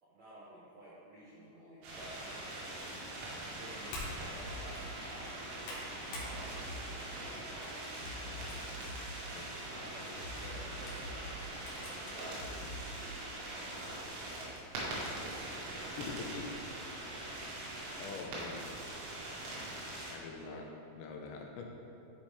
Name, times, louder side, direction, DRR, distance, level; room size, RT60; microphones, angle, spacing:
voice 1, 0.0-3.0 3.5-8.5 9.1-16.1 16.5-16.7 20.3-20.5, right 1 dB, 75° right, -9 dB, 1.7 m, -54 dB
sound 1, 1.8-20.1, right 1 dB, 90° right, 4.1 m, -43 dB
sound 2, 3.9-4.1 4.6-4.8 5.3-6.3 6.7-7.0 7.6-8.9 9.4-9.5 10.4-12.2 12.7-12.8 13.6-14.0, left 2 dB, 70° left, 3.2 m, -48 dB
sound 3, 4.4-4.7 5.0-5.1 6.1-6.3 6.6-6.9 7.2-7.3 8.0-8.5 8.8-9.1 9.3-9.5 10.2-10.7 11.0-11.2 11.5-11.6 12.3-12.9, left 1 dB, 40° right, 2.0 m, -46 dB
voice 2, 16.0-16.5 18.0-18.7 20.1-20.6 21.0-21.7, left 5 dB, 85° left, 1 dB, 2.9 m, -44 dB
12.0 x 5.1 x 3.5 m, 2.6 s
omnidirectional pair, 5.2 m